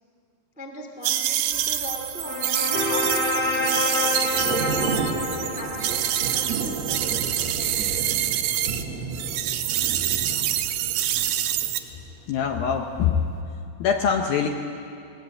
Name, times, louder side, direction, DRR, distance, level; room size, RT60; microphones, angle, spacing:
voice 1, 0.5-4.9 5.5-7.6, left 1 dB, 5° right, 1 dB, 0.9 m, -40 dB
sound 1, 1.0-8.8 9.1-11.8, right 12 dB, 75° right, 2.3 m, -26 dB
sound 2, 1.5-7.4, left 2 dB, 20° left, 1.8 m, -29 dB
Thunder / Rain, 2.6-12.5 12.9-13.1, right 4 dB, 60° right, 1.9 m, -33 dB
voice 2, 12.3-13.2 13.8-14.5, left 7 dB, 75° left, 4 dB, 2.3 m, -23 dB
20.5 x 18.5 x 8.5 m, 2.6 s
omnidirectional pair, 5.1 m